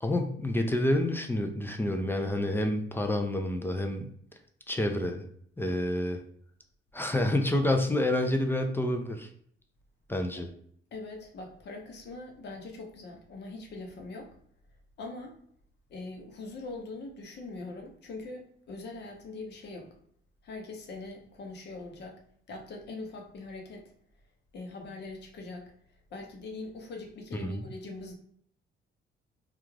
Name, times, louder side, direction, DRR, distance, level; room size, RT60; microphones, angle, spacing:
voice 1, 0.0-4.1 4.7-5.2 5.6-6.2 6.9-9.3 10.1-10.5 27.3-27.7, left 1 dB, 10° left, 4 dB, 0.4 m, -28 dB
voice 2, 10.9-14.3 15.0-15.4 15.9-20.0 20.4-22.2 22.5-23.9 24.5-25.7 26.1-28.1, left 3 dB, 60° left, 2 dB, 0.8 m, -42 dB
2.3 x 2.3 x 3.1 m, 0.65 s
cardioid pair, 90°, 20 cm